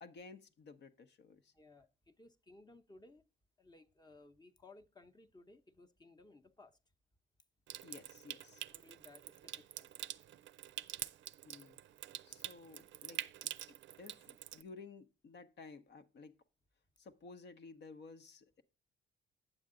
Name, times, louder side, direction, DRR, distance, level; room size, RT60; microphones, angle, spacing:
voice 1, 0.0-1.5 7.8-8.6 11.4-11.8 12.2-16.3 17.0-18.6, left 4 dB, 60° left, 0.9 m, -55 dB
voice 2, 1.5-3.2 3.6-6.8 8.7-9.9, left 2 dB, 20° left, 0.8 m, -60 dB
Water tap faucet / Sink (filling or washing) / Trickle dribble, 7.7-14.6, right 12 dB, 70° right, 0.5 m, -47 dB
8.8 x 7.2 x 3.8 m
cardioid pair, 90°, 20 cm